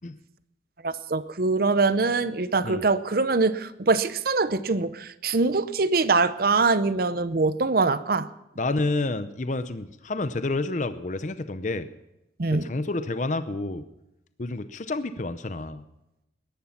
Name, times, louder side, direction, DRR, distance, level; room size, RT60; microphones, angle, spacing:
voice 1, 0.8-8.3 12.4-12.6, right 3 dB, 50° right, 14 dB, 0.7 m, -23 dB
voice 2, 8.6-11.9 12.5-13.8 14.4-15.8, left 2 dB, 40° left, 11 dB, 0.7 m, -29 dB
20.5 x 11.0 x 5.9 m, 0.90 s
head